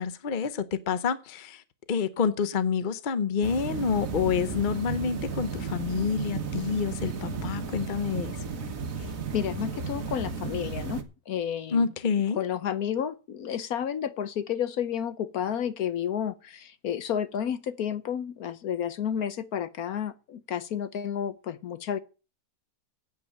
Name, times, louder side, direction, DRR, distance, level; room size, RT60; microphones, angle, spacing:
voice 1, 0.0-1.6 1.9-8.4 11.7-12.4, left 6 dB, 35° left, 0.9 m, -28 dB
sound 1, 3.4-11.0, right 5 dB, 55° right, 1.7 m, -34 dB
voice 2, 9.0-11.9 12.4-22.0, left 9 dB, 65° left, 1.2 m, -31 dB
9.3 x 8.6 x 7.4 m
omnidirectional pair, 1.8 m